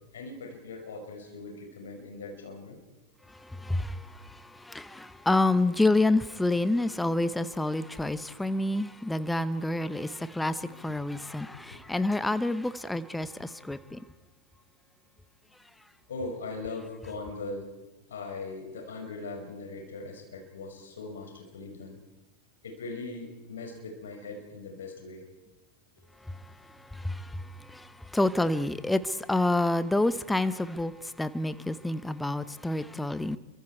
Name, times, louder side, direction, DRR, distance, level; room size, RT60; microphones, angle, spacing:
voice 1, 0.1-2.8 11.1-11.6 16.1-17.7 18.1-22.0 22.6-25.2, left 3 dB, 65° left, 5.2 m, -40 dB
voice 2, 3.6-4.0 4.7-14.0 27.0-27.2 27.7-27.8 28.1-30.9 31.2-33.4, left 2 dB, 5° left, 0.9 m, -28 dB
28.5 x 24.0 x 4.6 m
figure-of-eight pair, 90°, 0 cm